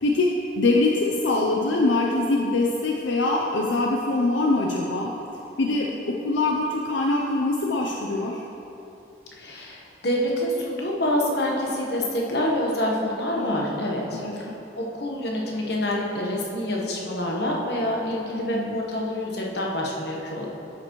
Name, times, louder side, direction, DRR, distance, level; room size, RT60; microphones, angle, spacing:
voice 1, 0.0-5.1 5.6-8.4 13.4-13.6 14.1-14.4 18.4-18.8, left 2 dB, 90° left, -1 dB, 0.6 m, -23 dB
voice 2, 9.4-14.5 14.8-20.5, left 1 dB, 65° left, -2 dB, 1.2 m, -27 dB
10.5 x 6.8 x 3.1 m, 2.9 s
head